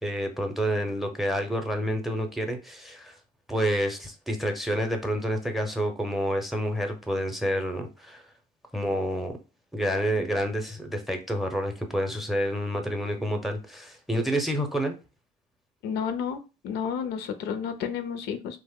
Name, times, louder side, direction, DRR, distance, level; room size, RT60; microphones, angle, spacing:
voice 1, 0.0-3.1 3.5-8.2 8.7-9.4 9.7-14.9, equal, ahead, 0.6 m, -28 dB
voice 2, 15.8-18.6, left 7 dB, 75° left, 0.5 m, -31 dB
2.9 x 2.0 x 3.5 m
cardioid pair, 110°, 17 cm